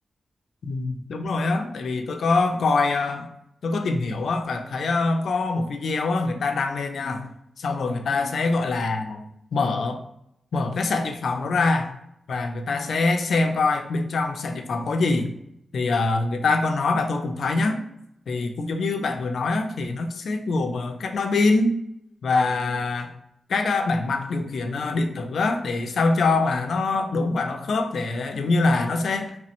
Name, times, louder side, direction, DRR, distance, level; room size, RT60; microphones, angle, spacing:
voice 1, 0.6-3.3 3.6-7.2 7.6-9.2 9.5-10.0 10.5-11.9 12.3-15.3 15.7-17.8 18.3-21.8 22.2-23.1 23.5-29.4, left 3 dB, 75° left, 6 dB, 0.3 m, -24 dB
2.9 x 2.0 x 2.9 m, 0.76 s
wide cardioid pair, 140°, 0 cm